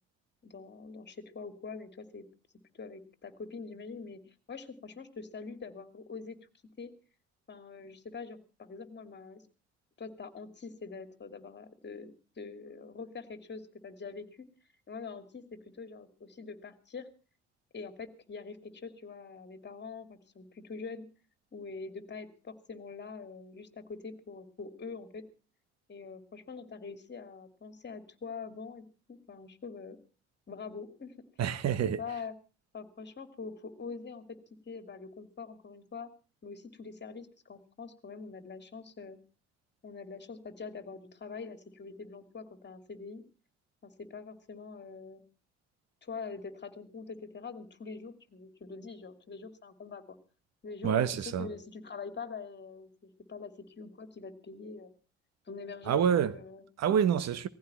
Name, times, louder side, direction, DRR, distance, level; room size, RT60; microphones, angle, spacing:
voice 1, 0.4-2.3 2.7-6.4 6.8-6.9 7.5-9.4 10.0-14.5 14.9-17.1 17.7-21.1 21.5-25.2 25.9-30.0 30.5-31.2 32.0-32.3 32.7-34.3 34.7-36.1 36.4-39.2 39.8-43.2 43.8-45.2 46.0-50.2 50.6-54.9 55.5-56.6, left 4 dB, 35° left, 2.6 m, -44 dB
voice 2, 31.4-32.0 50.8-51.5 55.9-56.3 56.8-57.5, right 8 dB, 55° right, 1.4 m, -27 dB
19.0 x 15.0 x 4.3 m
hypercardioid pair, 60°, 32 cm